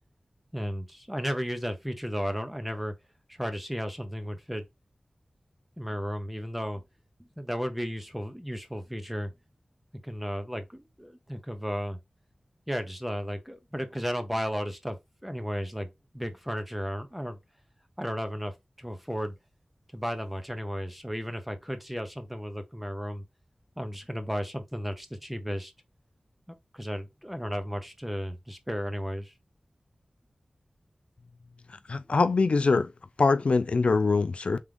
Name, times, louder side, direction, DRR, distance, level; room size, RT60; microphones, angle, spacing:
voice 1, 0.5-2.9 3.4-4.6 5.8-6.8 7.2-9.3 10.0-12.0 12.7-15.0 15.2-15.9 16.1-17.4 18.0-18.5 18.8-19.3 19.9-23.2 23.8-25.7 26.7-29.3, equal, 5° right, 0.9 m, -34 dB
voice 2, 31.9-32.9 33.2-34.6, left 4 dB, 70° left, 0.3 m, -23 dB
3.7 x 3.6 x 3.4 m
wide cardioid pair, 60°, 2 cm